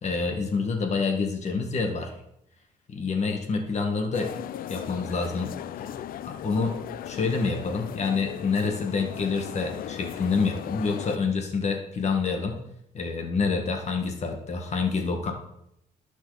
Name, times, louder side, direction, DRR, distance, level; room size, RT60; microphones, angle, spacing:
voice 1, 0.0-2.1 2.9-4.3 4.7-6.0 6.2-6.7 7.1-12.6 12.9-15.3, left 4 dB, 45° left, 3 dB, 1.8 m, -27 dB
sound 1, 4.1-11.2, left 11 dB, 65° left, 0.5 m, -37 dB
18.0 x 6.1 x 4.2 m, 0.79 s
cardioid pair, 120°, 16 cm